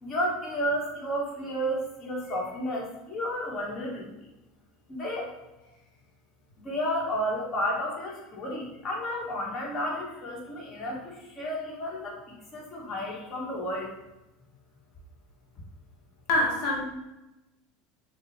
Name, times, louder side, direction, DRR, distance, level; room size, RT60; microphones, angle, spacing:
voice 1, 0.0-4.1 4.9-5.3 6.6-13.9, equal, 35° left, -3 dB, 1.6 m, -32 dB
voice 2, 16.3-16.8, left 1 dB, 60° left, 0 dB, 0.9 m, -25 dB
6.5 x 2.4 x 3.2 m, 0.96 s
hypercardioid pair, 80°, 0 cm